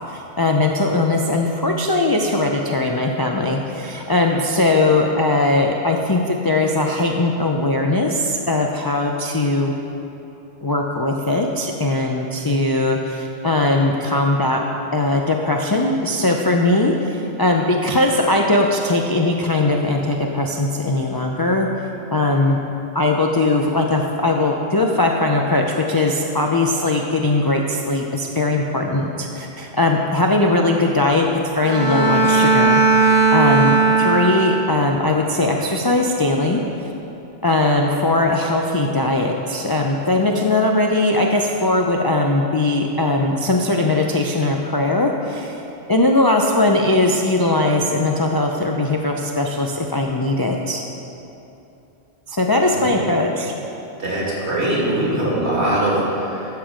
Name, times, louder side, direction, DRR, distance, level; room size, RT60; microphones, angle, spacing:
voice 1, 0.1-9.7 10.6-14.6 14.9-21.7 22.1-22.6 22.9-36.9 37.4-45.6 45.9-50.8 52.3-53.5, left 2 dB, 40° left, 0 dB, 0.3 m, -19 dB
Bowed string instrument, 31.6-34.8, right 4 dB, 40° right, 1.2 m, -16 dB
voice 2, 52.7-53.0 54.0-56.5, right 1 dB, 70° right, -6 dB, 2.5 m, -22 dB
11.5 x 5.8 x 5.1 m, 2.9 s
omnidirectional pair, 1.2 m